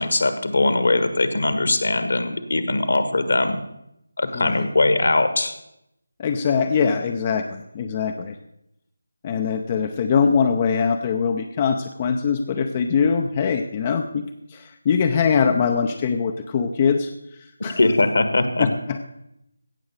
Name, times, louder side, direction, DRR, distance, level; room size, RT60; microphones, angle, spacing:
voice 1, 0.0-3.6 4.2-5.5 17.8-18.7, left 2 dB, 55° left, 10 dB, 1.5 m, -21 dB
voice 2, 4.3-4.7 6.2-7.5 7.7-8.3 9.2-17.1 17.6-17.8 18.6-19.1, left 6 dB, 25° left, 6 dB, 0.6 m, -22 dB
16.5 x 6.3 x 6.5 m, 0.82 s
figure-of-eight pair, 160°, 0 cm